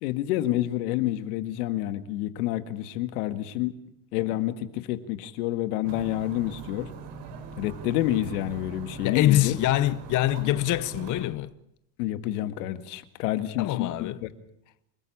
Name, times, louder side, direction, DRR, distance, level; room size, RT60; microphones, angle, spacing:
voice 1, 0.0-3.7 4.1-6.9 7.6-9.6 12.0-14.3, left 14 dB, 80° left, 1.9 m, -28 dB
sound 1, 5.8-11.3, right 5 dB, 70° right, 4.6 m, -41 dB
voice 2, 9.0-11.5 13.6-14.2, left 15 dB, 40° left, 0.8 m, -24 dB
28.0 x 14.5 x 8.7 m
supercardioid pair, 120°, 45 cm